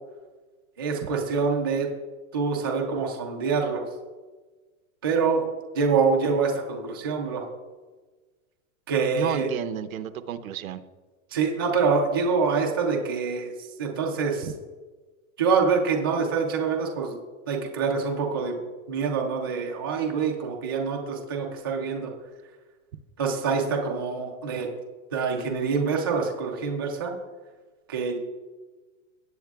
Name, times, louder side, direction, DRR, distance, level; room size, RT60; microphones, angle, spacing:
voice 1, 0.8-1.9 2.3-3.9 5.0-5.5 5.7-7.4 8.9-9.5 11.3-14.5 15.4-17.2 17.5-18.5 18.9-22.1 23.2-24.7 25.1-27.1 27.9-28.2, right 5 dB, 20° right, 0 dB, 0.4 m, -25 dB
voice 2, 9.1-10.8, right 10 dB, 80° right, 11 dB, 0.8 m, -31 dB
17.5 x 8.2 x 2.3 m, 1.3 s
supercardioid pair, 180°, 41 cm